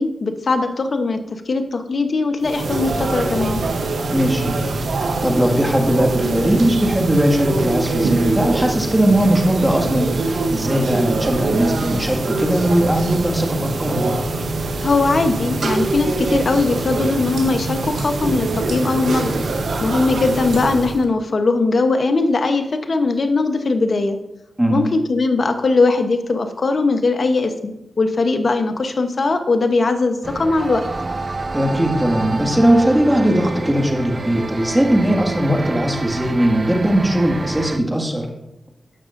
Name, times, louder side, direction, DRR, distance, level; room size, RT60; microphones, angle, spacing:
voice 1, 0.0-3.6 14.8-19.3 19.8-24.2 24.7-27.7 28.0-30.9, left 3 dB, 60° left, 7 dB, 0.9 m, -19 dB
sound 1, 2.4-21.0, right 3 dB, 80° right, 0.9 m, -23 dB
voice 2, 4.1-4.6 5.0-14.1 24.6-24.9 31.5-38.3, right 1 dB, 15° right, 1 dB, 1.9 m, -19 dB
sound 2, 30.2-37.8, right 3 dB, 45° right, 0.5 m, -28 dB
14.5 x 6.2 x 2.6 m, 0.88 s
cardioid pair, 40°, 0 cm